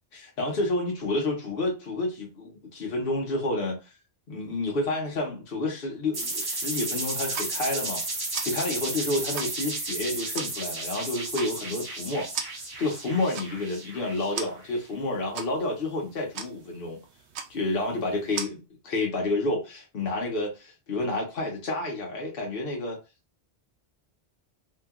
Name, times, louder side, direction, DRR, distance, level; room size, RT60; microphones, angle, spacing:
voice 1, 0.1-3.8 4.3-17.0 17.5-23.0, left 2 dB, 60° left, 1.1 m, -30 dB
sound 1, 6.1-14.7, right 2 dB, 30° right, 0.5 m, -33 dB
sound 2, 7.1-18.5, right 6 dB, 85° right, 0.8 m, -41 dB
2.9 x 2.5 x 2.3 m
omnidirectional pair, 1.1 m